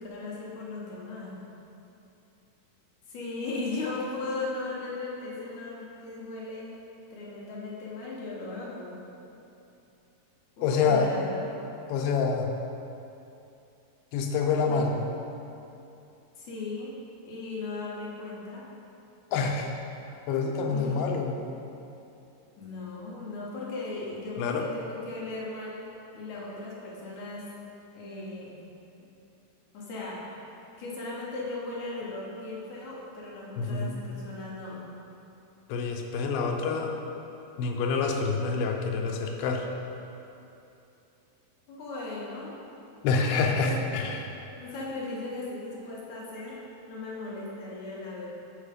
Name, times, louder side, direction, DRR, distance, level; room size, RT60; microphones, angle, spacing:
voice 1, 0.0-1.4 3.1-6.7 7.1-9.0 10.6-11.5 14.7-14.8 16.4-16.9 17.2-18.6 20.7-21.0 22.6-25.8 26.1-27.5 27.9-28.6 29.7-30.4 30.8-34.8 41.7-42.6 43.5-43.8 44.6-48.3, left 3 dB, 65° left, -5 dB, 2.1 m, -37 dB
voice 2, 10.6-11.1 11.9-12.5 14.1-15.0 19.3-19.8 20.3-21.4 24.4-24.7 33.6-34.0 35.7-37.0 37.6-39.7 43.0-44.3, left 4 dB, 85° left, 2 dB, 2.5 m, -27 dB
7.5 x 4.5 x 5.0 m, 2.8 s
omnidirectional pair, 4.1 m